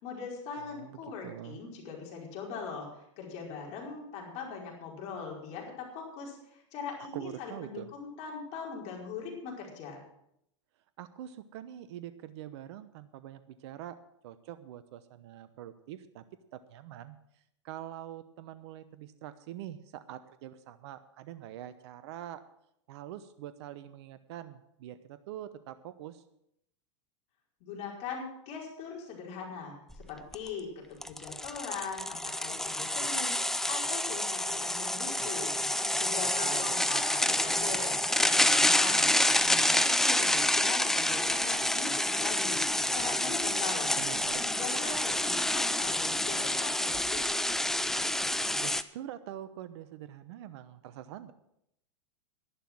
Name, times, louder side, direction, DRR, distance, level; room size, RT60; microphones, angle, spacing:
voice 1, 0.0-10.0 27.6-35.5 36.0-37.9 38.2-43.9 44.4-47.3, left 5 dB, 45° left, -1 dB, 4.9 m, -41 dB
voice 2, 0.6-1.6 7.1-7.9 11.0-14.0 14.2-16.2 16.5-17.2 17.6-22.4 22.9-26.2 36.4-37.2 44.0-44.4 48.6-51.3, right 12 dB, 60° right, 12 dB, 0.9 m, -44 dB
sound 1, 29.9-30.0 30.3-30.5 31.0-48.8, left 1 dB, 5° left, 0.5 m, -28 dB
11.5 x 11.5 x 6.1 m, 0.77 s
hypercardioid pair, 110°, 16 cm